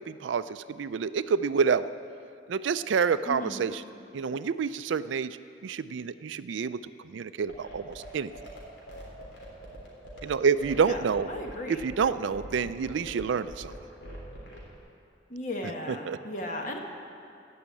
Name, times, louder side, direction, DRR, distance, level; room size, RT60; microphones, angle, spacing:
voice 1, 0.0-1.9 2.5-3.8 4.1-5.4 5.6-8.3 10.2-11.3 11.7-13.7 15.9-16.2, right 6 dB, 80° right, 14 dB, 0.4 m, -28 dB
voice 2, 3.2-3.6 10.8-11.0 11.3-11.8 15.3-16.8, left 1 dB, 40° left, 1 dB, 1.5 m, -36 dB
sound 1, 7.5-14.8, equal, 75° left, 3.5 m, -44 dB
16.0 x 6.4 x 8.4 m, 2.6 s
head